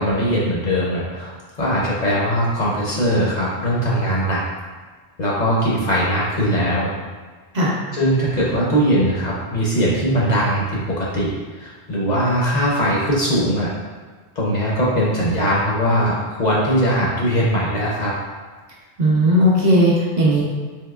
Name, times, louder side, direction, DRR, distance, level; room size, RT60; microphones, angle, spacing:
voice 1, 0.0-4.4 5.2-6.9 7.9-11.3 11.6-13.7 14.4-18.1, equal, 50° left, -5 dB, 0.6 m, -20 dB
voice 2, 19.0-20.4, equal, 50° right, -6 dB, 0.7 m, -16 dB
3.6 x 2.7 x 2.3 m, 1.4 s
omnidirectional pair, 1.1 m